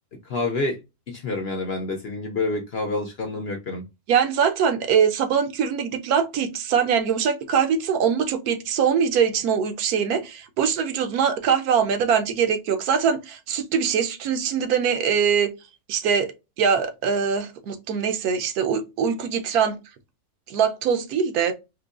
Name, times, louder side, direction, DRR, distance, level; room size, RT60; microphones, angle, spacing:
voice 1, 0.2-0.8 1.1-3.9, left 3 dB, 60° left, 0.7 m, -28 dB
voice 2, 4.1-15.5 15.9-16.3 16.6-19.7 20.5-21.5, right 7 dB, 80° right, 1.1 m, -22 dB
3.8 x 2.6 x 2.4 m
omnidirectional pair, 1.6 m